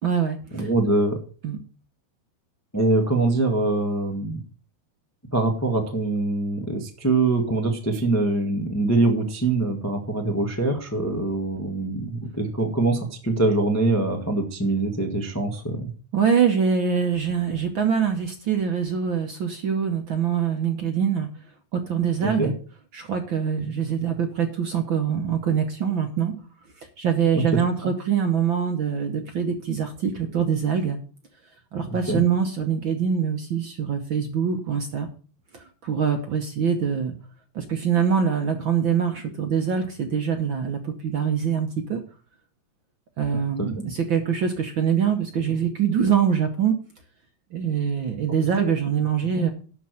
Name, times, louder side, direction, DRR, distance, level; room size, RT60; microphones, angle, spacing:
voice 1, 0.0-0.7 1.4-1.6 16.1-21.3 21.7-22.5 22.9-26.3 26.8-31.0 31.7-35.1 35.5-37.1 37.5-42.0 43.2-46.7 47.5-49.5, right 7 dB, 60° right, 5 dB, 1.4 m, -24 dB
voice 2, 0.5-1.2 2.7-4.4 5.3-15.9 22.2-22.5 27.3-27.9 32.1-32.2 43.3-43.7 49.3-49.5, right 2 dB, 15° left, 3 dB, 0.5 m, -24 dB
11.5 x 4.7 x 7.6 m, 0.39 s
omnidirectional pair, 3.3 m